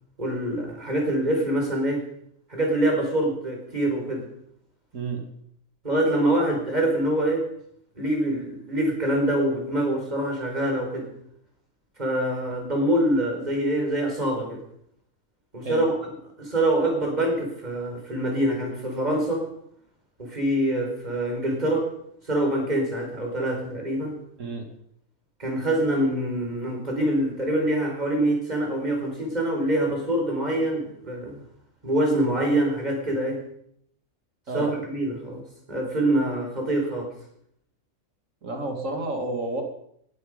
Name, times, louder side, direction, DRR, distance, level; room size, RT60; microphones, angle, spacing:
voice 1, 0.2-2.0 2.5-4.3 5.8-7.5 7.9-11.1 12.0-14.6 15.5-16.1 16.4-19.5 20.2-21.9 22.2-24.1 25.4-31.4 31.8-33.4 34.5-35.4 35.7-37.1, right 1 dB, 30° right, 1 dB, 5.1 m, -25 dB
voice 2, 4.9-5.3 15.6-15.8 24.4-24.7 34.5-34.7 38.4-39.6, right 2 dB, 65° right, 4 dB, 2.6 m, -30 dB
20.5 x 13.0 x 5.2 m, 0.71 s
omnidirectional pair, 1.4 m